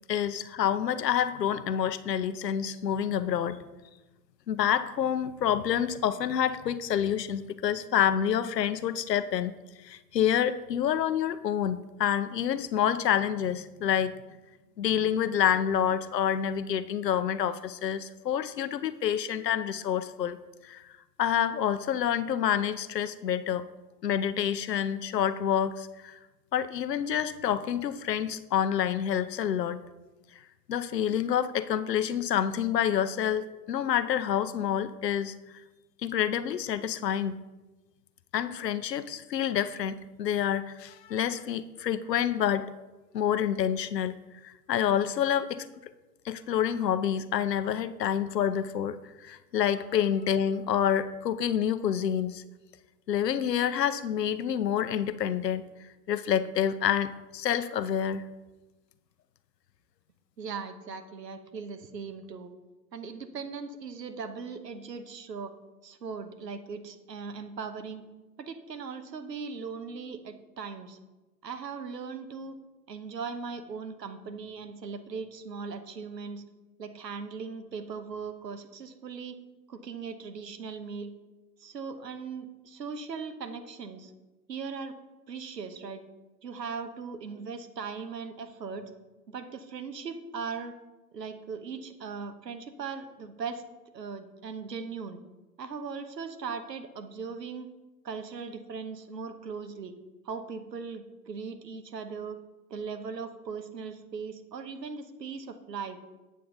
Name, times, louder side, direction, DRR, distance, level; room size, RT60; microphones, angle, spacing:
voice 1, 0.1-3.6 4.5-9.5 9.8-14.2 14.8-20.4 20.6-20.8 21.2-23.7 24.0-26.2 26.5-29.8 30.7-35.4 36.0-37.4 38.3-42.7 43.1-44.2 44.4-45.9 46.2-52.4 53.1-55.6 56.1-58.2, left 9 dB, 80° left, 13 dB, 0.7 m, -28 dB
voice 2, 60.4-62.5 62.9-65.5 65.8-68.0 68.4-71.0 71.4-72.6 72.9-76.4 76.8-79.4 79.7-81.1 81.6-84.1 84.5-84.9 85.3-86.0 86.4-88.9 89.3-90.8 91.1-93.6 93.9-95.2 95.6-97.7 98.0-99.9 100.2-102.4 102.7-106.0, right 5 dB, 80° right, 8 dB, 1.1 m, -39 dB
8.4 x 7.1 x 3.9 m, 1.1 s
figure-of-eight pair, 110°, 49 cm